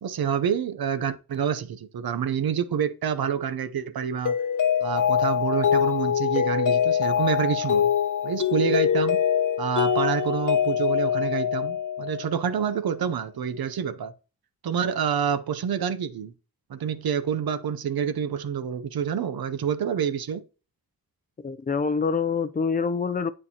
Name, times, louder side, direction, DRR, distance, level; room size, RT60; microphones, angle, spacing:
voice 1, 0.0-4.3 4.8-7.9 8.2-9.2 9.6-14.1 14.6-16.3 16.7-20.4, right 7 dB, 80° right, 0.7 m, -27 dB
Mallet percussion, 4.2-12.4, left 8 dB, 55° left, 0.7 m, -24 dB
voice 2, 21.4-23.3, left 5 dB, 25° left, 0.4 m, -26 dB
8.7 x 6.5 x 2.9 m
wide cardioid pair, 175°, 36 cm